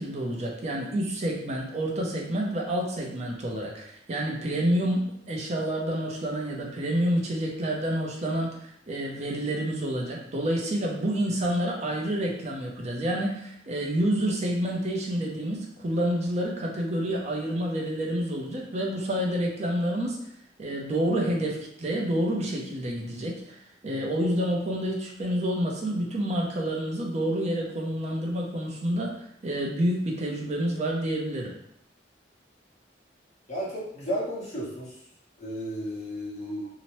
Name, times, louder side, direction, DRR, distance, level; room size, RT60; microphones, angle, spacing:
voice 1, 0.0-20.2 20.6-29.2 29.4-31.5, right 1 dB, 40° right, -1 dB, 0.6 m, -28 dB
voice 2, 33.5-35.0 35.4-36.7, equal, 40° left, -7 dB, 1.1 m, -33 dB
2.8 x 2.1 x 3.0 m, 0.69 s
head